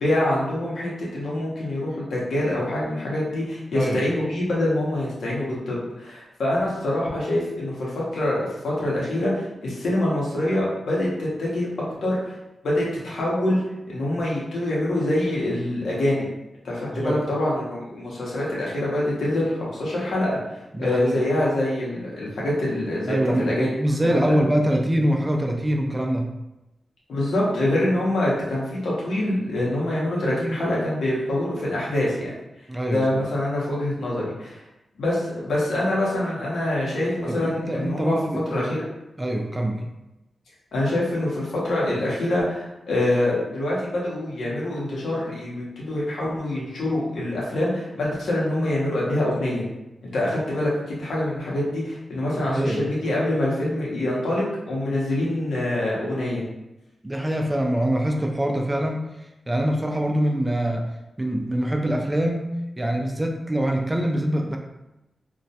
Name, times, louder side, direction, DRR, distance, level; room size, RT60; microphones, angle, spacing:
voice 1, 0.0-11.7 12.0-12.3 12.6-13.6 13.9-16.2 16.6-20.4 20.8-23.7 24.0-24.1 27.1-32.3 32.9-34.6 35.0-38.2 38.5-38.8 40.7-49.7 50.0-56.4, left 1 dB, 85° left, -5 dB, 0.7 m, -25 dB
voice 2, 20.7-21.2 23.1-26.3 32.7-33.0 37.3-38.7 39.2-39.8 52.4-52.9 57.0-59.0 59.5-60.9 61.2-64.6, right 1 dB, 20° right, 2 dB, 0.3 m, -24 dB
2.2 x 2.1 x 2.7 m, 0.94 s
cardioid pair, 75°, 0 cm